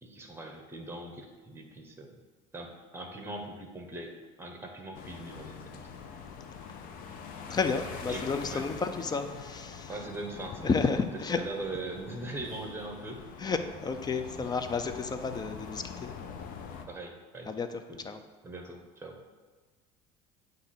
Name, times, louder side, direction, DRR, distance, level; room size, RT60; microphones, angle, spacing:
voice 1, 0.0-2.2 2.5-5.9 8.1-8.3 8.5-8.6 9.9-11.0 11.4-13.2 14.4-14.5 16.9-17.5 17.9-18.0 18.4-19.2, right 2 dB, 15° right, 3 dB, 1.1 m, -41 dB
sound 1, 4.9-16.9, left 6 dB, 60° left, 0.7 m, -44 dB
voice 2, 7.5-10.0 10.6-11.4 13.4-16.1 17.5-17.7 18.0-18.2, left 4 dB, 25° left, 8 dB, 0.5 m, -31 dB
7.9 x 2.7 x 5.8 m, 1.3 s
supercardioid pair, 95°, 16 cm